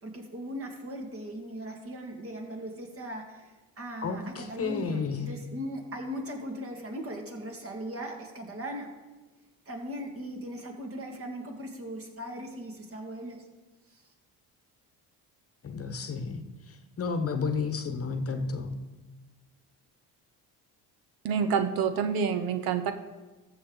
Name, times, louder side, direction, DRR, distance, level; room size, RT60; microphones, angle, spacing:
voice 1, 0.0-8.9 9.7-13.5 13.9-14.0, equal, 35° right, 2.1 m, -39 dB
voice 2, 4.0-5.4 15.6-18.8, left 5 dB, 40° left, 1.0 m, -32 dB
voice 3, 21.2-22.9, right 6 dB, 75° right, 0.7 m, -27 dB
14.0 x 6.7 x 3.9 m
cardioid pair, 95°, 37 cm